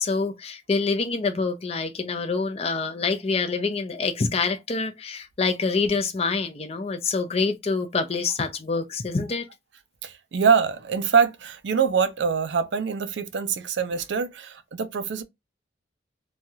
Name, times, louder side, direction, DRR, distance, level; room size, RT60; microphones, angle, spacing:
voice 1, 0.0-9.5, left 4 dB, 35° left, 0.5 m, -26 dB
voice 2, 10.0-15.2, right 6 dB, 80° right, 0.5 m, -24 dB
3.0 x 2.3 x 2.6 m
head